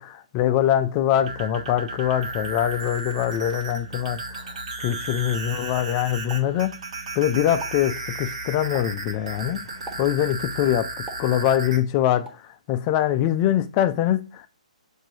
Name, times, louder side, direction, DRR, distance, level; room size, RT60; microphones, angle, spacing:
voice 1, 0.0-4.5 4.8-6.8 7.2-9.6 10.0-12.4 12.7-14.5, left 11 dB, 30° left, 0.5 m, -23 dB
sound 1, 1.1-11.8, right 2 dB, 55° right, 1.1 m, -34 dB
Explosion, 6.3-7.2 7.5-7.9 8.7-9.1 9.9-10.2 11.1-11.8 12.3-12.5, right 2 dB, 10° right, 0.6 m, -41 dB
6.0 x 2.7 x 2.8 m
figure-of-eight pair, 130°, 4 cm